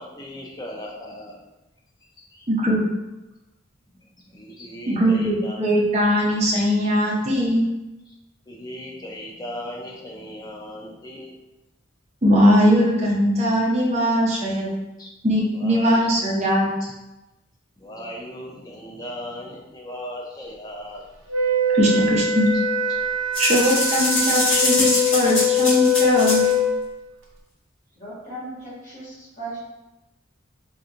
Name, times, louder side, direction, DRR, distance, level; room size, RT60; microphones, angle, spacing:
voice 1, 0.0-1.4 2.3-2.5 4.3-5.6 8.1-8.2 8.5-11.3 15.0-15.1 15.5-16.1 16.8-16.9 17.8-21.0, equal, 20° left, -2 dB, 0.5 m, -37 dB
voice 2, 2.5-2.8 4.9-7.6 12.2-14.7 15.2-16.7 21.7-22.5 23.4-26.4, equal, 35° right, -4 dB, 0.7 m, -20 dB
Wind instrument woodwind instrument, 21.3-26.8, left 3 dB, 75° right, 0.6 m, -22 dB
sound 1, 23.3-26.5, left 2 dB, 80° left, 1.3 m, -23 dB
voice 3, 28.0-29.6, right 2 dB, 40° left, -9 dB, 1.5 m, -37 dB
3.4 x 2.8 x 2.5 m, 1.0 s
head